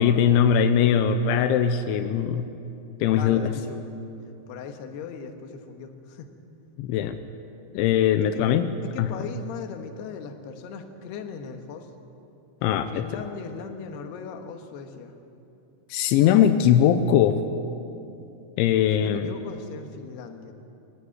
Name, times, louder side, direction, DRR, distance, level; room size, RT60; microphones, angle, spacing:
voice 1, 0.0-2.5 3.0-3.5 6.8-7.2 7.7-8.7 9.0-9.1 12.6-13.1 15.9-17.4 18.6-19.3, left 9 dB, 85° left, 8 dB, 3.1 m, -20 dB
voice 2, 3.2-3.9 4.5-6.3 8.3-8.5 8.8-11.9 12.9-15.1 19.0-20.5, left 6 dB, 70° left, 5 dB, 3.2 m, -38 dB
22.5 x 16.0 x 9.7 m, 2.7 s
omnidirectional pair, 5.3 m